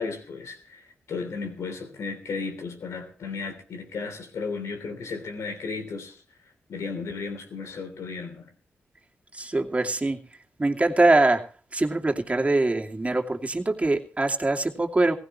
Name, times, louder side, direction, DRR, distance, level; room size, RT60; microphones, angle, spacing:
voice 1, 0.0-6.2 6.7-8.5, left 4 dB, 80° left, 3.3 m, -34 dB
voice 2, 9.3-10.2 10.6-15.2, right 2 dB, 25° right, 2.5 m, -23 dB
18.0 x 16.0 x 3.1 m
supercardioid pair, 45°, 5 cm